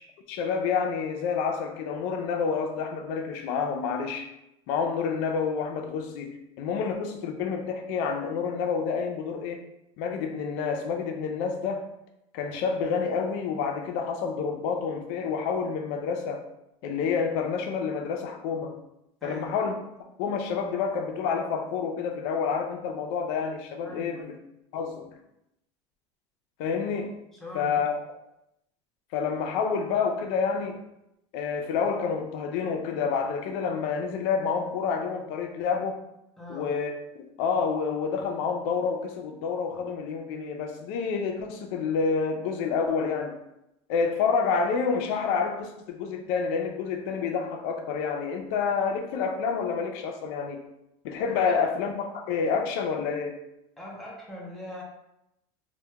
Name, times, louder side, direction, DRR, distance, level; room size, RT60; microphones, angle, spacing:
voice 1, 0.3-4.3 4.7-9.6 10.0-11.9 12.3-16.4 16.8-18.8 19.2-19.7 20.0-24.2 24.7-25.1 26.6-27.2 27.5-27.9 29.1-30.8 31.3-36.0 36.5-36.9 37.4-43.4 43.9-50.6 51.0-53.4, left 5 dB, 75° left, 4 dB, 0.4 m, -28 dB
voice 2, 23.8-24.3 27.3-27.9 36.4-36.7 51.6-51.7 53.8-54.8, left 1 dB, ahead, -4 dB, 0.5 m, -41 dB
2.2 x 2.2 x 2.7 m, 0.84 s
cardioid pair, 140°, 14 cm